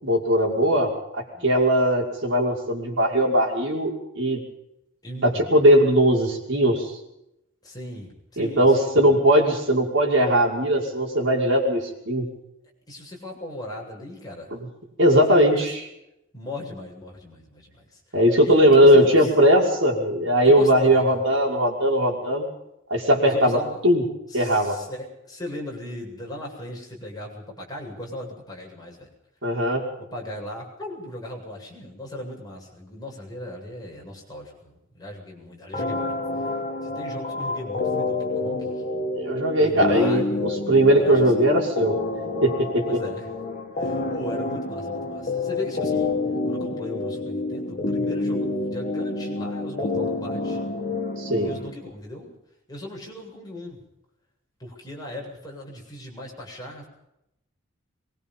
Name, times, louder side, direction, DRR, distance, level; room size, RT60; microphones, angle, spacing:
voice 1, 0.0-4.4 5.2-6.9 8.4-12.3 14.5-14.6 15.0-15.8 18.1-22.5 22.9-23.6 23.8-24.0 24.3-24.8 29.4-29.8 39.1-41.9 42.4-42.8 51.2-51.5, equal, 65° right, 0 dB, 5.9 m, -19 dB
voice 2, 5.0-5.6 7.6-9.3 12.9-14.5 15.3-15.7 16.3-19.3 20.4-21.2 23.2-23.8 24.3-29.1 30.0-36.1 36.4-36.5 36.8-38.8 39.5-41.5 42.9-43.3 43.8-46.1 46.5-50.6 51.3-52.3 52.7-53.8 54.6-56.9, left 1 dB, 20° left, -1 dB, 7.7 m, -38 dB
sound 1, 35.7-51.7, left 3 dB, 40° left, 2.3 m, -28 dB
24.0 x 23.5 x 5.7 m, 0.84 s
head